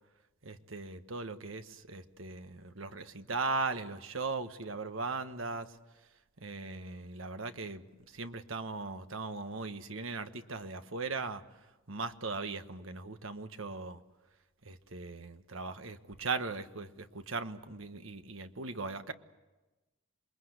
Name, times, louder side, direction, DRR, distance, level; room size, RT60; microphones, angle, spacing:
voice 1, 0.4-5.7 6.4-11.4 11.9-14.0 14.6-19.1, right 3 dB, 75° right, 9 dB, 1.4 m, -38 dB
27.5 x 22.0 x 8.1 m, 1.1 s
head